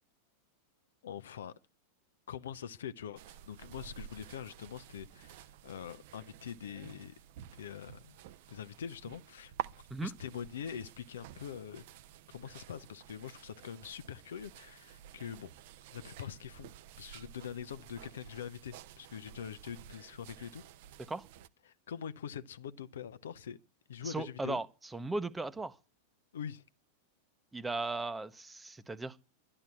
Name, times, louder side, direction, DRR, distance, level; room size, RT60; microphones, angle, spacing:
voice 1, 1.0-1.5 2.3-7.1 7.5-8.2 8.5-9.5 10.0-11.8 12.3-15.5 15.9-16.7 17.0-20.6 21.6-23.6 23.9-24.6 26.3-26.6, left 8 dB, 65° left, 0.8 m, -44 dB
sound 1, 3.2-21.5, right 12 dB, 50° right, 0.7 m, -51 dB
voice 2, 24.0-24.7 24.9-25.7 27.5-29.2, right 3 dB, 10° right, 1.0 m, -37 dB
12.0 x 10.0 x 9.5 m
figure-of-eight pair, 90°, 0 cm